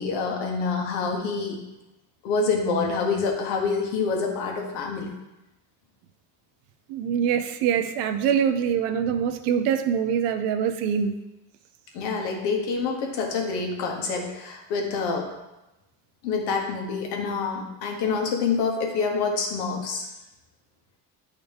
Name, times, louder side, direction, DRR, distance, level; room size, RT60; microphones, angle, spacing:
voice 1, 0.0-1.6 2.2-5.1 11.9-15.3 16.2-20.1, left 4 dB, 80° left, 2 dB, 1.5 m, -27 dB
voice 2, 6.9-11.2, right 8 dB, 80° right, 7 dB, 0.7 m, -24 dB
9.2 x 4.1 x 3.5 m, 0.97 s
cardioid pair, 120°, 40 cm